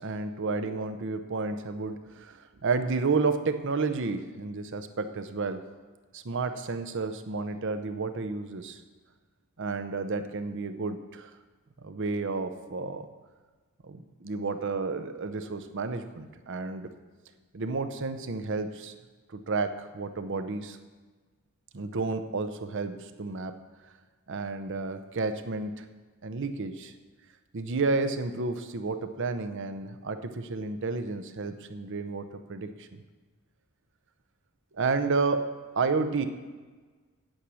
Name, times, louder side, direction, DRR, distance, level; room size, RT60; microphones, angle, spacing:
voice 1, 0.0-5.6 6.1-8.8 9.6-11.3 11.8-13.1 13.8-16.9 17.5-18.9 19.3-20.8 21.7-23.5 24.3-25.8 26.2-26.9 27.5-33.0 34.7-35.5 35.8-36.2, right 4 dB, 60° right, 9 dB, 0.7 m, -31 dB
8.9 x 6.3 x 8.3 m, 1.4 s
head